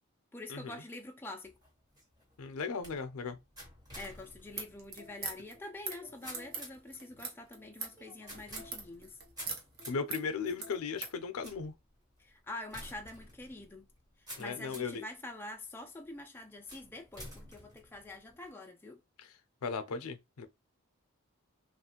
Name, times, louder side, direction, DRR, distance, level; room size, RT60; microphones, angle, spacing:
voice 1, 0.3-1.5 4.0-9.2 12.2-13.9 14.2-19.0, left 2 dB, 10° left, 0.3 m, -46 dB
sound 1, 1.4-15.0 15.6-16.1 16.7-18.5, equal, 15° right, 1.1 m, -52 dB
voice 2, 2.4-3.4 9.9-11.7 14.4-15.0 19.2-19.3 19.6-20.5, left 5 dB, 85° left, 0.5 m, -37 dB
sound 2, 4.5-11.2, right 4 dB, 45° right, 0.8 m, -42 dB
3.0 x 2.4 x 2.9 m
head